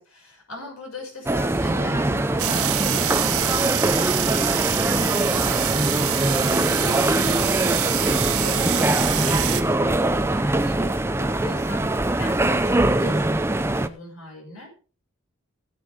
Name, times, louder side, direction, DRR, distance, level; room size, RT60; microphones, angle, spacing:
voice 1, 0.0-14.7, left 1 dB, 80° left, 0 dB, 6.4 m, -40 dB
sound 1, 1.3-13.9, right 1 dB, 10° right, 0.5 m, -22 dB
sound 2, 2.4-9.6, right 11 dB, 90° right, 1.4 m, -26 dB
17.0 x 8.2 x 3.6 m, 0.37 s
head